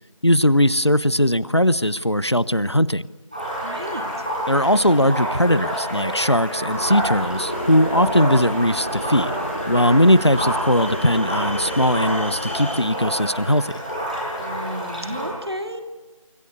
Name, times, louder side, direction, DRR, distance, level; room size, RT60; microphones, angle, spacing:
voice 1, 0.2-3.0 4.5-9.4 9.7-13.8, equal, 50° left, 20 dB, 0.8 m, -19 dB
sound 1, 3.3-15.3, equal, 15° right, 6.3 m, -28 dB
voice 2, 3.6-4.2 14.4-15.8, equal, 50° right, 7 dB, 2.9 m, -33 dB
sound 2, 6.7-12.8, equal, 25° left, 2.8 m, -32 dB
28.5 x 25.5 x 8.3 m, 1.3 s
figure-of-eight pair, 180°, 18 cm